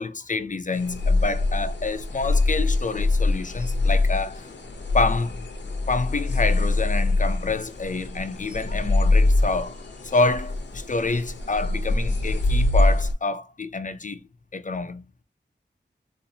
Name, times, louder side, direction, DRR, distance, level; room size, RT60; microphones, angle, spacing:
voice 1, 0.0-4.5 4.9-5.4 5.9-14.2 14.5-15.1, left 3 dB, 45° left, 0.4 m, -27 dB
sound 1, 0.7-13.1, left 2 dB, 80° left, 0.7 m, -24 dB
4.1 x 2.5 x 2.6 m
wide cardioid pair, 70°, 18 cm